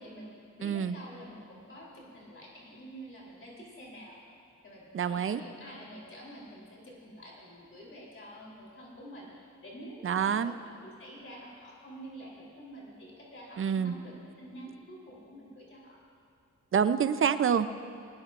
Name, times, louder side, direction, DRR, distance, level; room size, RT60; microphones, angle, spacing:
voice 1, 0.0-4.2 4.6-16.0, equal, 45° left, -4 dB, 3.6 m, -48 dB
voice 2, 0.6-1.0 4.9-5.4 10.0-10.5 13.6-14.0 16.7-17.7, right 7 dB, 45° right, 12 dB, 0.6 m, -27 dB
19.5 x 19.5 x 2.5 m, 2.5 s
wide cardioid pair, 105°, 30 cm